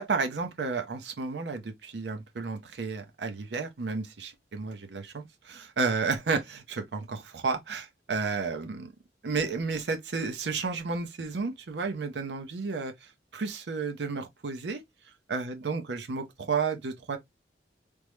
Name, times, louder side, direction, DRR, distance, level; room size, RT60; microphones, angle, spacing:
voice 1, 0.0-8.9 9.2-14.8 15.3-17.2, right 4 dB, 70° right, 0.6 m, -32 dB
3.4 x 2.1 x 3.0 m
head